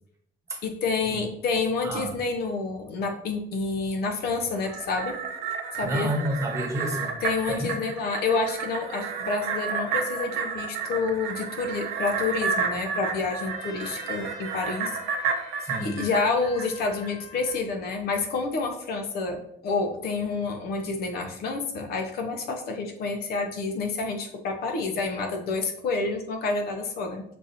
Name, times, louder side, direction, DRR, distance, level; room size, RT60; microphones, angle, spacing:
voice 1, 0.6-5.2 5.7-6.1 7.2-14.9 15.2-15.5 15.8-27.2, left 4 dB, 70° left, 4 dB, 0.7 m, -29 dB
voice 2, 1.8-2.2 5.8-7.1 7.5-7.7 15.6-16.0, equal, 15° right, 0 dB, 1.1 m, -29 dB
sound 1, 4.5-17.1 17.5-17.6, right 5 dB, 90° right, 0.6 m, -31 dB
Trumpet, 13.4-17.7, left 5 dB, 45° left, 1.3 m, -46 dB
6.6 x 2.6 x 2.7 m, 0.71 s
cardioid pair, 110°, 17 cm